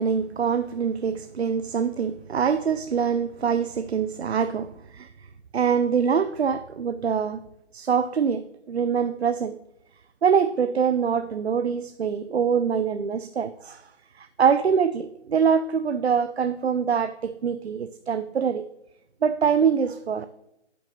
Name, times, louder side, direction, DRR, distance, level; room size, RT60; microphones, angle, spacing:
voice 1, 0.0-5.1 5.5-7.4 7.7-9.6 10.2-13.9 14.2-18.6 19.2-20.3, right 6 dB, 60° right, 0.5 m, -24 dB
10.5 x 8.0 x 3.0 m
hypercardioid pair, 175°, 36 cm